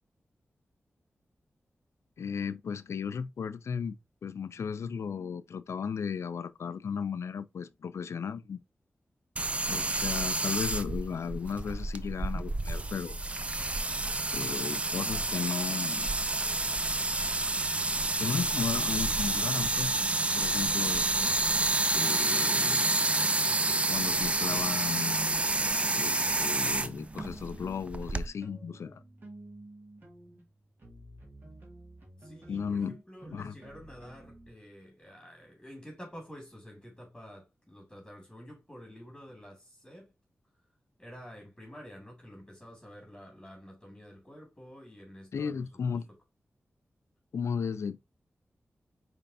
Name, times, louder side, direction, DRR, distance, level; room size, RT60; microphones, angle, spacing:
voice 1, 2.2-4.0 4.2-8.6 9.7-13.2 14.3-16.1 18.2-20.0 20.3-21.1 21.9-22.9 23.9-25.4 25.9-29.0 32.5-33.0 33.3-33.5 45.3-46.1 47.3-48.0, left 6 dB, 75° left, 0.4 m, -35 dB
sound 1, 9.4-28.3, right 2 dB, 25° right, 0.4 m, -29 dB
sound 2, 20.6-24.7 25.0-34.5, right 1 dB, 45° right, 2.0 m, -51 dB
voice 2, 32.2-40.1 41.0-46.2, equal, 5° left, 2.2 m, -49 dB
5.2 x 3.4 x 2.6 m
wide cardioid pair, 70°, 5 cm